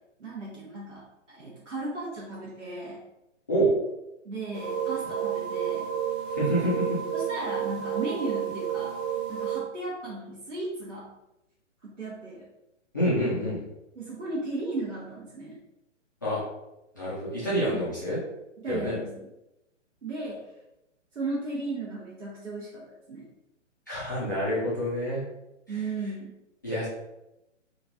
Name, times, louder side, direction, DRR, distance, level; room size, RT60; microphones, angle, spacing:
voice 1, 0.2-3.0 4.2-5.9 7.1-9.0 9.3-11.1 11.8-12.5 14.0-15.6 17.7-17.9 18.6-19.3 20.0-20.4 21.1-23.2 25.7-26.3, right 2 dB, 75° right, -5 dB, 0.9 m, -35 dB
sound 1, 4.5-9.6, right 9 dB, 20° right, 0.7 m, -31 dB
voice 2, 6.3-6.9 12.9-13.6 16.2-16.4 16.9-18.2 18.7-19.0 23.9-25.2 25.7-25.8 26.6-26.9, equal, 15° left, -11 dB, 0.3 m, -27 dB
3.0 x 2.4 x 2.4 m, 0.91 s
figure-of-eight pair, 125°, 37 cm